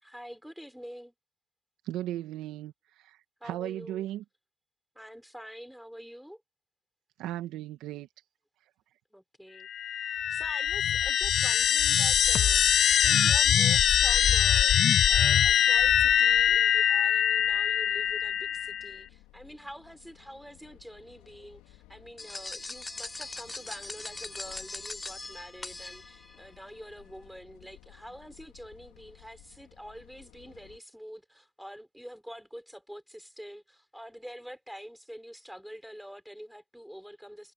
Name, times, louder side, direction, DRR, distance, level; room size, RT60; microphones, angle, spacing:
voice 1, 0.0-1.1 3.4-4.1 5.0-6.4 9.1-9.7 10.3-37.5, equal, ahead, 6.9 m, -46 dB
voice 2, 1.8-4.2 7.2-8.1, right 13 dB, 75° right, 1.9 m, -36 dB
sound 1, 9.7-18.9, left 9 dB, 55° left, 0.4 m, -23 dB
sound 2, 13.9-30.8, left 18 dB, 85° left, 3.0 m, -57 dB
sound 3, 22.2-26.4, left 2 dB, 20° left, 0.7 m, -40 dB
supercardioid pair, 80°, 0 cm